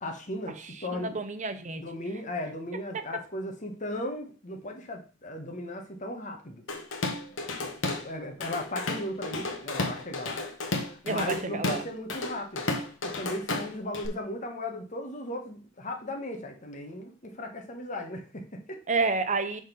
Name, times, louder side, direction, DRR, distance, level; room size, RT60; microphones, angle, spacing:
voice 1, 0.0-1.2 1.8-6.6 7.6-10.4 10.9-12.7 13.0-18.8, left 1 dB, 40° left, 3 dB, 1.3 m, -36 dB
voice 2, 1.0-1.8 11.0-11.8 18.9-19.6, right 4 dB, 40° right, 9 dB, 0.7 m, -29 dB
Drum kit / Drum, 6.7-8.1 8.4-14.1, left 2 dB, 85° left, 1.1 m, -32 dB
6.1 x 4.0 x 5.2 m, 0.37 s
head